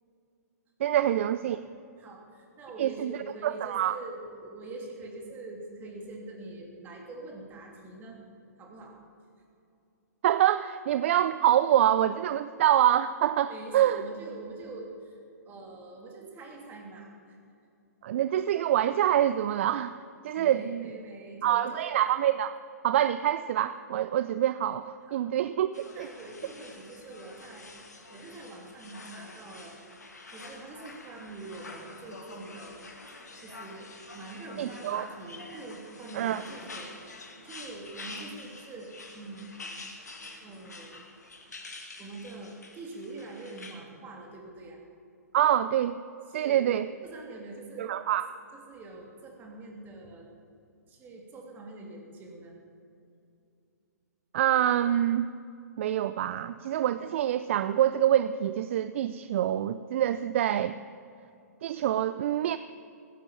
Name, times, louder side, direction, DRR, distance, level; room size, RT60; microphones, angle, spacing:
voice 1, 0.8-1.6 2.8-3.1 3.4-4.0 10.2-14.0 18.0-20.0 20.2-20.9 21.4-22.6 22.8-26.1 34.6-35.1 36.1-36.4 45.3-46.0 46.3-46.9 47.8-48.3 54.3-55.3 55.8-60.8 61.6-62.6, right 11 dB, 45° right, 14 dB, 0.4 m, -26 dB
voice 2, 2.0-8.2 8.6-9.0 13.5-15.2 15.4-17.4 20.4-21.9 25.1-25.2 25.9-27.7 28.1-29.7 30.3-32.8 33.4-39.5 40.4-41.0 42.0-44.8 46.3-46.7 47.0-47.9 48.5-50.3 50.9-52.5, right 2 dB, 20° right, 0 dB, 3.1 m, -44 dB
sound 1, 25.7-43.7, left 3 dB, 75° left, 2.2 m, -47 dB
16.0 x 9.8 x 7.3 m, 2.6 s
figure-of-eight pair, 120°, 9 cm